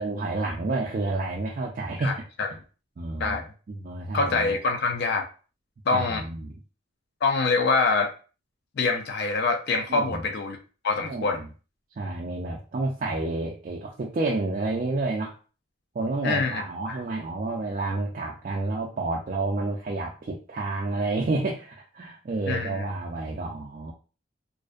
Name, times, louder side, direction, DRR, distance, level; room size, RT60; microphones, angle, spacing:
voice 1, 0.0-2.2 3.0-3.4 3.7-4.5 5.9-6.6 9.9-10.2 11.0-11.5 12.0-15.3 15.9-23.9, right 2 dB, 40° right, -1 dB, 0.3 m, -30 dB
voice 2, 2.0-2.5 3.2-3.4 4.1-5.2 5.9-6.2 7.2-8.1 8.8-10.6 10.8-11.4 16.2-16.6 16.9-17.0 22.5-22.9, left 3 dB, 55° left, 5 dB, 0.4 m, -25 dB
2.5 x 2.1 x 2.3 m, 0.36 s
head